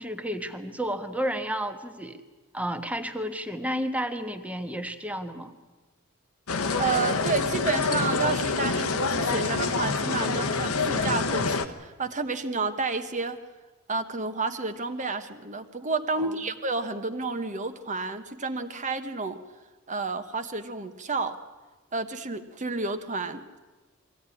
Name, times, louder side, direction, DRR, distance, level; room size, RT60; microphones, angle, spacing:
voice 1, 0.0-2.2 2.5-5.5 16.2-16.3, equal, 5° right, 7 dB, 1.3 m, -31 dB
sound 1, 6.5-11.7, left 4 dB, 85° left, 1.2 m, -26 dB
voice 2, 6.8-13.4 13.9-19.4 19.9-21.4 21.9-23.6, right 4 dB, 35° right, 9 dB, 1.2 m, -30 dB
22.0 x 16.0 x 9.8 m, 1.2 s
head